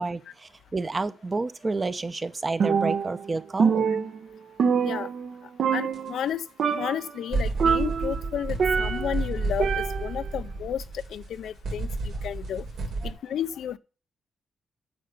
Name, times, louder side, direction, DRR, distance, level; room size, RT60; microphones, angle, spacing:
voice 1, 0.0-3.9 13.0-13.1, right 3 dB, 25° right, 0.7 m, -30 dB
Percussion, 2.6-3.3 3.6-5.3 5.6-6.3 6.6-7.1 7.6-9.2 9.6-10.3, right 6 dB, 60° right, 0.8 m, -25 dB
voice 2, 5.7-6.4 6.7-10.8 11.1-11.9 12.2-12.6 13.0-13.8, left 9 dB, 85° left, 0.5 m, -32 dB
sound 1, 5.9-6.0 7.3-13.1, right 3 dB, 85° right, 3.5 m, -31 dB
9.0 x 6.8 x 6.8 m
cardioid pair, 115°, 0 cm